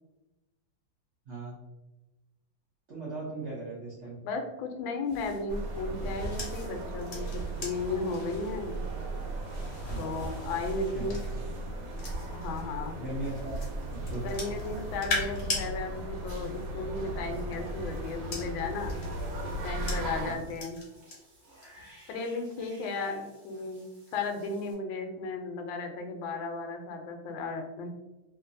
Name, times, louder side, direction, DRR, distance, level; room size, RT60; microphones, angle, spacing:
voice 1, 2.9-4.2 9.8-10.2 10.9-11.1 13.0-13.5 14.1-14.3 20.2-20.5, right 2 dB, 65° right, -8 dB, 0.6 m, -38 dB
voice 2, 4.2-8.7 10.0-11.2 12.3-13.0 14.2-18.9 19.4-20.8 22.1-23.8 24.1-27.9, left 3 dB, 85° left, 4 dB, 1.4 m, -35 dB
sound 1, 5.1-12.6 13.2-15.7 16.9-21.1 21.5-21.9, left 2 dB, 50° left, 1.0 m, -40 dB
sound 2, 5.5-20.4, right 2 dB, 85° right, 1.4 m, -37 dB
Cat / Bathtub (filling or washing), 18.7-24.7, right 1 dB, 45° right, 1.0 m, -54 dB
3.0 x 2.8 x 2.6 m, 1.0 s
omnidirectional pair, 2.1 m